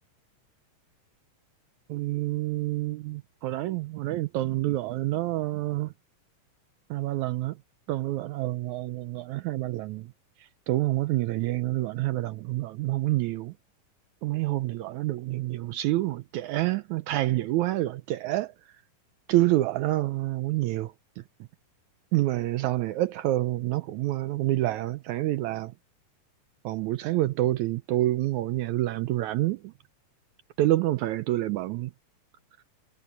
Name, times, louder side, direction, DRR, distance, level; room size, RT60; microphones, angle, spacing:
voice 1, 1.9-5.9 6.9-7.6 7.9-10.1 10.7-13.5 14.2-18.5 19.3-20.9 22.1-25.7 26.6-29.7 30.6-31.9, right 16 dB, 80° right, 1.7 m, -27 dB
omnidirectional pair, 3.9 m